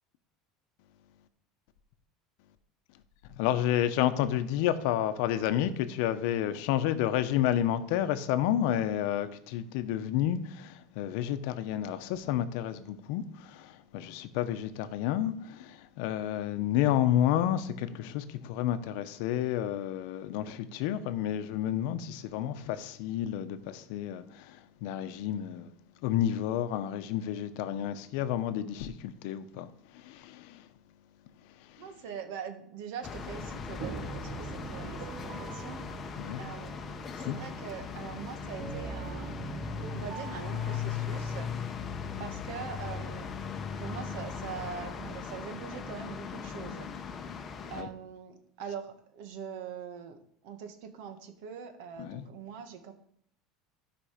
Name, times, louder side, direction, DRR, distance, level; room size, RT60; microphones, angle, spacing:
voice 1, 3.3-25.7 26.0-30.7 31.6-31.9 36.2-36.4 37.1-37.4 47.7-47.9 52.0-52.2, left 11 dB, 65° left, 0.8 m, -30 dB
voice 2, 31.8-35.9 36.4-36.8 37.2-39.4 39.9-41.5 42.2-43.3 43.8-46.9 47.7-50.2 50.4-52.9, right 7 dB, 70° right, 1.4 m, -42 dB
sound 1, 33.0-47.8, left 6 dB, 25° left, 0.7 m, -38 dB
sound 2, 33.8-43.4, right 7 dB, 45° right, 0.8 m, -45 dB
13.0 x 5.2 x 5.1 m
cardioid pair, 165°, 0 cm